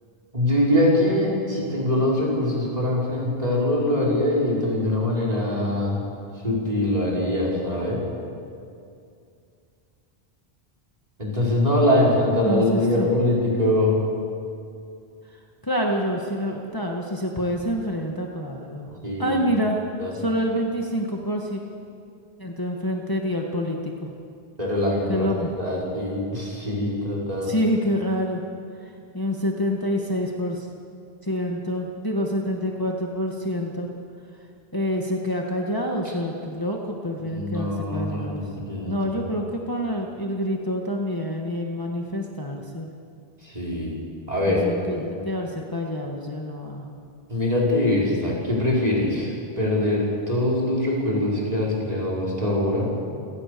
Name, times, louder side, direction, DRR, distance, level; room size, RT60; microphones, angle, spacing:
voice 1, 0.3-6.0 6.4-8.0 11.2-14.0 19.0-19.4 20.0-20.1 24.6-25.3 25.6-27.5 37.3-39.0 43.4-43.9 44.3-44.7 47.3-49.3 49.6-52.9, left 1 dB, 40° right, -5 dB, 5.9 m, -23 dB
voice 2, 12.4-13.1 15.6-18.9 19.2-19.8 20.1-21.6 22.4-24.1 25.1-25.5 27.4-28.4 29.1-30.7 31.2-33.9 34.7-38.4 38.9-42.9 44.4-46.9, equal, 20° left, 0 dB, 1.9 m, -27 dB
29.0 x 18.0 x 7.0 m, 2.4 s
omnidirectional pair, 1.1 m